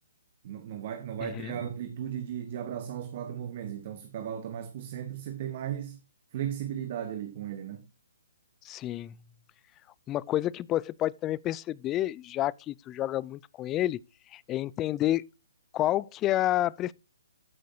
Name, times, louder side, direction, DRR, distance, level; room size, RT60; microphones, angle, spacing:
voice 1, 0.4-6.0 6.3-7.8, right 9 dB, 45° right, 1.2 m, -36 dB
voice 2, 1.2-1.5 8.6-9.2 10.1-14.0 14.3-15.3 15.7-16.9, left 14 dB, 20° left, 0.3 m, -29 dB
13.5 x 6.3 x 2.8 m
hypercardioid pair, 145°, 0 cm